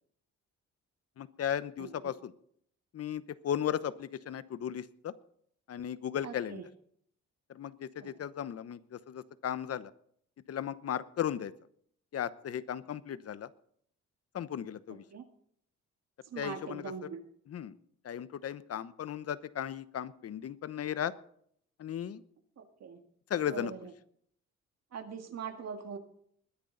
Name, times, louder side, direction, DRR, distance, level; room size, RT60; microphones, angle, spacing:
voice 1, 1.2-2.3 2.9-5.1 5.7-6.6 7.5-9.9 10.5-11.5 12.1-13.5 14.3-15.0 16.4-16.9 17.5-17.7 18.0-21.1 21.8-22.2 23.3-23.7, left 9 dB, 55° left, 15 dB, 1.0 m, -36 dB
voice 2, 1.8-2.1 6.2-6.6 8.0-8.2 15.1-15.3 16.2-17.2 22.6-23.0 23.5-23.9 24.9-26.0, right 6 dB, 60° right, 5 dB, 2.0 m, -42 dB
21.0 x 10.5 x 4.0 m, 0.65 s
cardioid pair, 90°, 30 cm